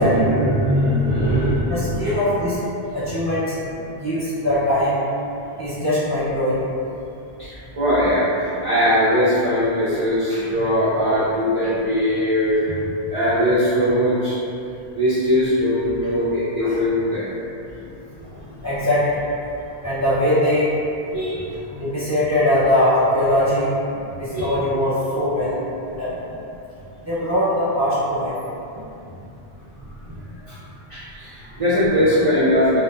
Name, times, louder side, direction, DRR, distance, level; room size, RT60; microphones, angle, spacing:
voice 1, 0.0-2.2 7.4-12.8 13.1-14.4 14.9-17.3 21.1-21.5 24.3-24.5 29.8-29.9 30.5-30.6 30.9-32.8, equal, 55° right, -11 dB, 0.4 m, -20 dB
voice 2, 1.7-2.6 2.9-3.5 3.9-5.0 5.6-6.6 16.6-16.8 18.4-19.2 19.8-20.7 21.7-23.7 24.2-25.6 25.9-26.2 27.0-28.3, left 1 dB, 20° left, -13 dB, 0.6 m, -21 dB
2.6 x 2.1 x 2.3 m, 2.7 s
omnidirectional pair, 1.1 m